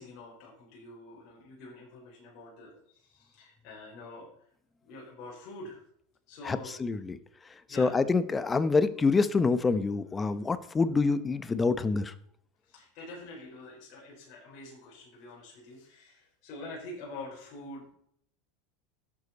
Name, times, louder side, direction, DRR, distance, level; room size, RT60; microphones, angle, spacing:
voice 1, 0.0-4.5 4.8-5.8 6.3-6.7 7.7-7.9 12.6-17.9, left 2 dB, 50° left, -4 dB, 4.4 m, -46 dB
voice 2, 6.4-7.2 7.7-12.1, left 4 dB, 20° left, 14 dB, 0.8 m, -26 dB
11.5 x 8.3 x 4.2 m, 0.67 s
hypercardioid pair, 105°, 0 cm